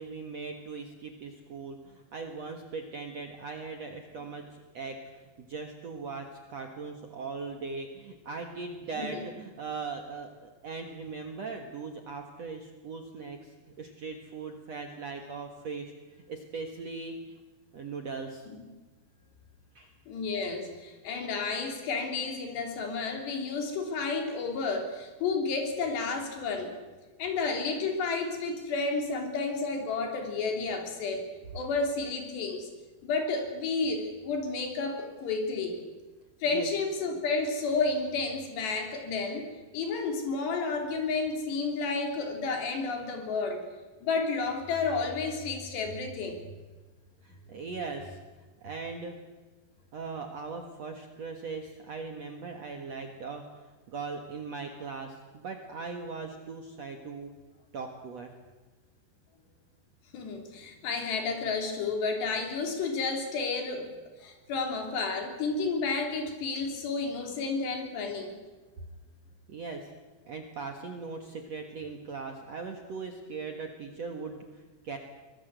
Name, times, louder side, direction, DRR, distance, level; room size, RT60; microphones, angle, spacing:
voice 1, 0.0-15.9 16.3-17.2 17.7-18.5 19.7-20.0 36.5-36.7 47.2-48.2 48.6-49.2 49.9-57.3 57.7-58.3 69.5-69.9 70.3-75.0, right 4 dB, 55° right, 4 dB, 1.9 m, -39 dB
voice 2, 20.1-26.7 27.2-31.3 31.5-32.7 33.0-35.8 36.4-39.5 39.7-43.6 44.0-46.4 60.1-63.9 64.2-68.3, left 4 dB, 70° left, 4 dB, 5.2 m, -31 dB
24.0 x 19.5 x 8.1 m, 1.3 s
omnidirectional pair, 5.2 m